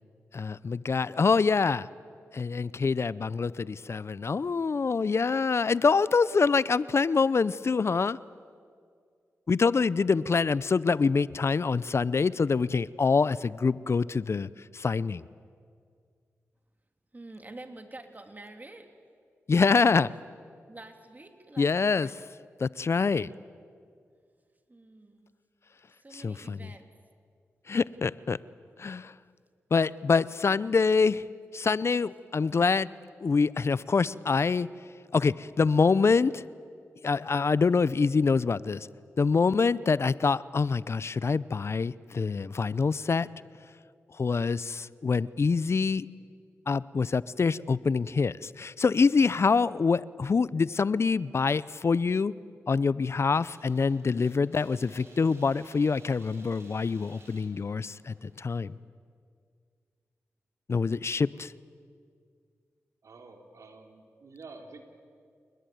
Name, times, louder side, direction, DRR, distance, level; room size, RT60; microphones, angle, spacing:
voice 1, 0.3-1.9 2.3-8.2 9.5-15.2 19.5-20.1 21.6-22.1 22.6-23.3 26.1-26.6 27.7-28.4 28.8-29.1 29.7-31.2 31.5-32.9 33.2-34.7 35.1-36.4 37.0-38.9 39.2-43.3 44.2-46.1 46.7-52.3 52.7-58.7 60.7-61.5, left 4 dB, 55° left, 19 dB, 0.6 m, -25 dB
voice 2, 17.1-18.9 20.7-22.2 24.7-25.3 25.9-26.9, right 2 dB, 30° right, 6 dB, 3.2 m, -47 dB
sound 1, 53.3-58.4, right 2 dB, 50° right, 7.4 m, -57 dB
voice 3, 63.0-64.8, right 3 dB, 70° right, 4 dB, 3.4 m, -49 dB
28.5 x 20.5 x 9.4 m, 2.2 s
cardioid pair, 50°, 5 cm